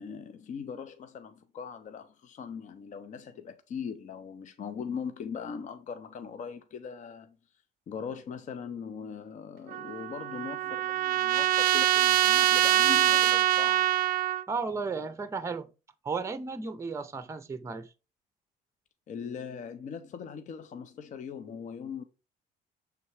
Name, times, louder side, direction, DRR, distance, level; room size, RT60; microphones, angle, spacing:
voice 1, 0.0-7.4 7.9-13.9 19.1-22.0, left 7 dB, 45° left, 0.7 m, -40 dB
Trumpet, 9.7-14.4, right 14 dB, 55° right, 0.4 m, -24 dB
voice 2, 14.5-15.7 16.0-17.9, right 4 dB, 15° right, 0.6 m, -34 dB
6.8 x 3.5 x 4.7 m
cardioid pair, 110°, 17 cm